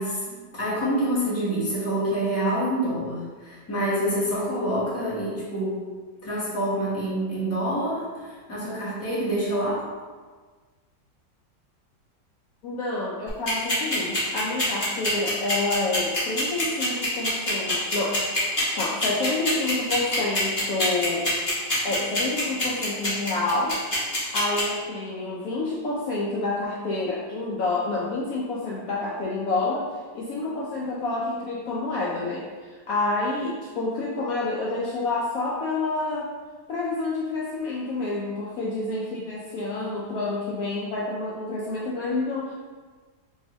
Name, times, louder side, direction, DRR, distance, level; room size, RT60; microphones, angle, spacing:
voice 1, 0.0-5.7 6.2-9.8, right 1 dB, 10° left, -9 dB, 0.9 m, -27 dB
voice 2, 12.6-18.3 18.7-21.3 21.8-23.8 24.3-36.3 36.7-42.5, left 2 dB, 70° left, -5 dB, 0.9 m, -28 dB
sound 1, 13.3-24.6, left 2 dB, 35° left, 1.4 m, -25 dB
4.6 x 2.9 x 2.9 m, 1.5 s
omnidirectional pair, 1.8 m